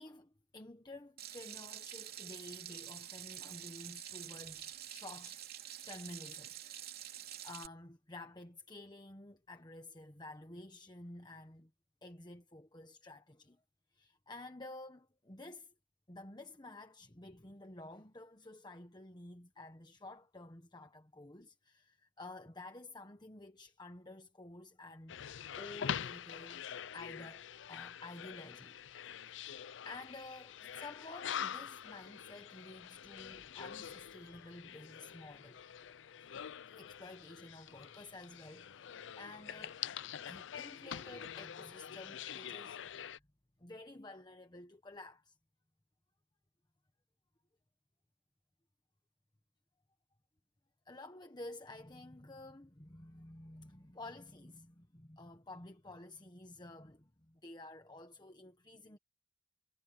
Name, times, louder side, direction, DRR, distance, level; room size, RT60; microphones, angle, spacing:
voice 1, 0.0-5.4 5.9-11.7 12.0-13.6 13.9-15.7 16.1-25.2 25.5-26.7 26.9-28.8 29.2-29.5 29.8-35.6 36.2-36.4 36.7-39.8 40.2-43.2 43.6-45.4 50.8-59.0, left 2 dB, 25° left, 1.3 m, -51 dB
Water tap faucet / Sink (filling or washing), 1.2-7.7, right 11 dB, 55° right, 3.3 m, -47 dB
sound 1, 25.1-43.2, left 8 dB, 80° left, 0.5 m, -45 dB
head